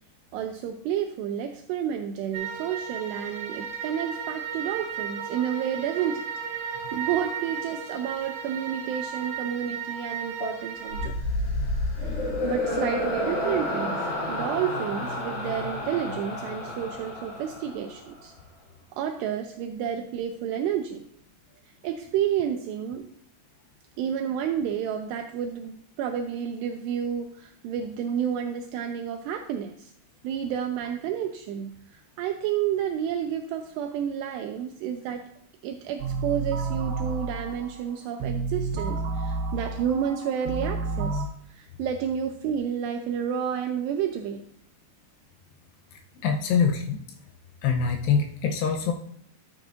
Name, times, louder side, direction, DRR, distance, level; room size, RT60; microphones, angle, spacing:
voice 1, 0.3-6.2 6.5-11.1 12.0-18.3 18.9-21.1 21.8-23.1 24.0-29.9 30.2-35.3 35.6-44.4, right 9 dB, 90° right, 5 dB, 2.4 m, -30 dB
sound 1, 2.3-11.1, right 7 dB, 55° right, 2.6 m, -35 dB
sound 2, 10.9-18.3, left 1 dB, 50° left, 1.9 m, -30 dB
sound 3, 36.0-41.3, right 3 dB, 75° right, 3.2 m, -30 dB
voice 2, 45.9-47.0 47.6-48.9, left 6 dB, 75° left, 3 dB, 2.6 m, -25 dB
11.5 x 7.5 x 2.5 m, 0.70 s
omnidirectional pair, 5.4 m